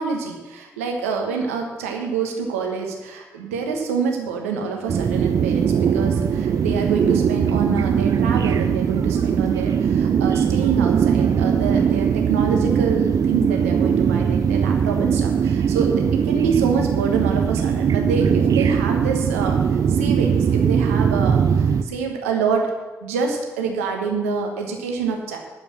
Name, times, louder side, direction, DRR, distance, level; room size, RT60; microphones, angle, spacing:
voice 1, 0.0-19.6 19.9-22.6 23.0-25.4, right 5 dB, 85° right, 2 dB, 1.2 m, -26 dB
sound 1, 4.9-21.8, right 7 dB, 50° right, 0.6 m, -20 dB
11.5 x 5.3 x 7.5 m, 1.3 s
hypercardioid pair, 40°, 7 cm